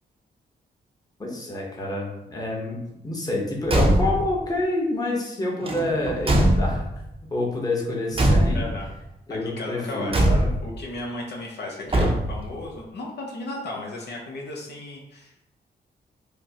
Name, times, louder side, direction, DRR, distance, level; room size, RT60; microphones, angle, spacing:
voice 1, 1.2-6.8 7.3-8.7 9.3-10.5, left 2 dB, 20° left, -2 dB, 1.0 m, -28 dB
Car / Truck / Slam, 3.6-4.4 5.6-7.1 8.1-8.9 10.1-10.8 11.9-12.6, right 1 dB, 30° right, 0.6 m, -21 dB
voice 2, 8.5-8.9 9.3-10.3 10.6-15.3, left 2 dB, 70° left, -2 dB, 0.7 m, -35 dB
5.0 x 2.1 x 2.8 m, 0.89 s
cardioid pair, 75°, 18 cm